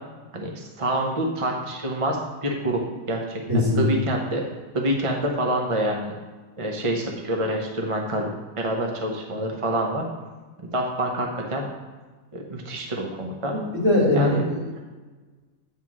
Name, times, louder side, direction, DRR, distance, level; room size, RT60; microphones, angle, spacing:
voice 1, 0.3-2.8 3.1-4.4 4.7-6.1 6.6-8.3 8.6-10.0 10.7-11.7 12.3-13.6 14.1-14.4, right 1 dB, 30° right, 0 dB, 0.8 m, -26 dB
voice 2, 3.5-3.9 13.5-14.6, left 1 dB, 65° right, -6 dB, 3.2 m, -21 dB
9.9 x 3.7 x 6.1 m, 1.3 s
omnidirectional pair, 1.4 m